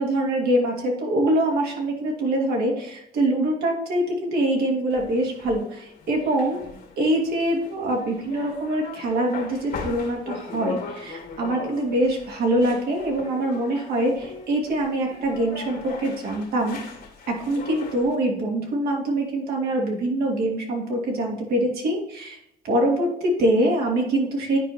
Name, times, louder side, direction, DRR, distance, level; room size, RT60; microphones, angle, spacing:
voice 1, 0.0-6.6 7.0-16.8 17.3-22.4 22.6-24.6, right 1 dB, 70° right, -1 dB, 2.7 m, -24 dB
sound 1, 4.9-18.2, left 5 dB, 60° left, 2.1 m, -39 dB
9.8 x 5.1 x 2.9 m, 0.77 s
cardioid pair, 110°, 17 cm